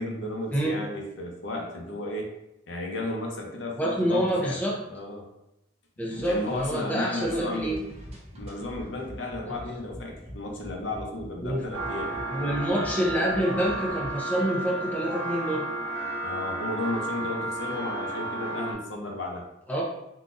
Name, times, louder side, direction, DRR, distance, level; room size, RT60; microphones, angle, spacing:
voice 1, 0.0-2.3 2.7-4.6 4.9-5.3 6.1-7.9 8.3-12.1 16.2-19.4, left 2 dB, 80° left, 0 dB, 0.7 m, -34 dB
voice 2, 3.8-4.7 6.0-7.8 9.5-9.7 11.4-11.6 12.3-15.6 19.7-19.8, right 1 dB, 10° left, -3 dB, 0.5 m, -27 dB
sound 1, 6.1-14.1, equal, 35° right, 0.7 m, -44 dB
sound 2, 11.7-18.7, right 1 dB, 80° right, 1.0 m, -32 dB
3.8 x 2.3 x 2.6 m, 0.87 s
head